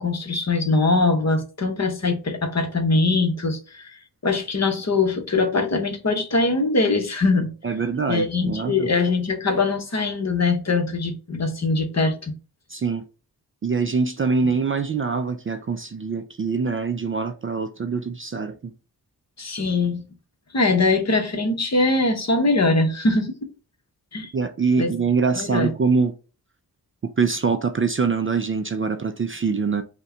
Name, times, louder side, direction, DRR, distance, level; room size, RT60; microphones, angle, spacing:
voice 1, 0.0-7.5 8.1-12.3 19.4-20.0 20.5-23.3 24.1-24.3 24.8-24.9 25.4-25.7, left 3 dB, 45° left, 1.0 m, -22 dB
voice 2, 7.6-8.9 12.7-13.0 13.6-18.7 24.3-26.1 27.0-29.8, right 5 dB, 35° right, 0.4 m, -24 dB
5.3 x 2.2 x 3.8 m
wide cardioid pair, 110°, 38 cm